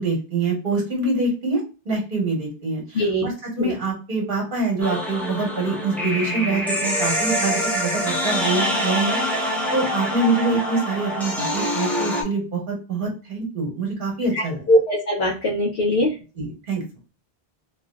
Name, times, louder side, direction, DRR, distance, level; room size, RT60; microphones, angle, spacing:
voice 1, 0.0-14.7 16.3-16.8, right 3 dB, 60° right, -1 dB, 1.4 m, -25 dB
voice 2, 2.9-3.3 3.6-3.7 14.3-16.1, equal, 80° left, -3 dB, 0.9 m, -21 dB
sound 1, 4.8-12.2, equal, ahead, 0.5 m, -25 dB
3.0 x 2.4 x 2.3 m, 0.32 s
omnidirectional pair, 1.0 m